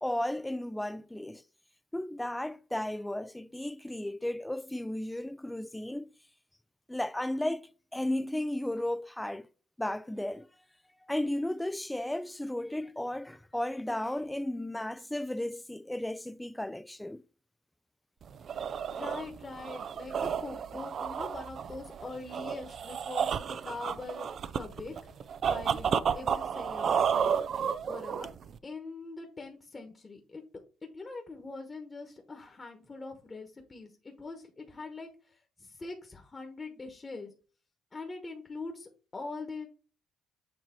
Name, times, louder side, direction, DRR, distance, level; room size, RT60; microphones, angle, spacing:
voice 1, 0.0-1.4 1.9-6.1 6.9-9.5 9.8-10.5 11.1-17.2, left 1 dB, 5° left, 0.4 m, -34 dB
sound 1, 18.2-28.6, right 7 dB, 60° right, 0.4 m, -32 dB
voice 2, 18.9-25.2 25.5-27.6 27.8-28.3 28.6-30.4 30.9-37.3 37.9-39.7, left 3 dB, 30° left, 1.2 m, -43 dB
7.3 x 2.9 x 4.4 m
cardioid pair, 90°, 0 cm